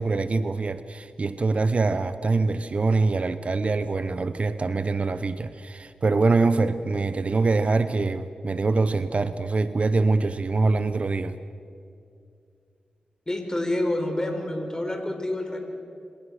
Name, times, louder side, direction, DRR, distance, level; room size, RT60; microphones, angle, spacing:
voice 1, 0.0-11.4, right 3 dB, 50° right, 13 dB, 0.8 m, -24 dB
voice 2, 13.3-15.6, left 1 dB, 25° left, 4 dB, 4.4 m, -28 dB
25.5 x 17.5 x 6.5 m, 2.4 s
cardioid pair, 50°, 3 cm